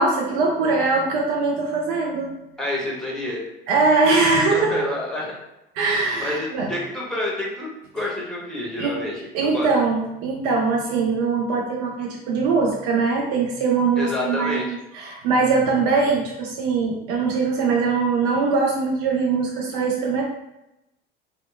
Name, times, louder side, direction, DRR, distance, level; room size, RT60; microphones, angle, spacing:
voice 1, 0.0-2.4 3.7-4.9 5.8-6.7 8.8-9.0 9.3-20.2, right 4 dB, 60° right, 0 dB, 0.5 m, -22 dB
voice 2, 2.6-3.4 4.5-5.3 6.2-9.2 9.5-9.7 14.0-14.7, left 1 dB, ahead, -3 dB, 0.9 m, -28 dB
2.8 x 2.1 x 2.3 m, 0.89 s
hypercardioid pair, 70°, 29 cm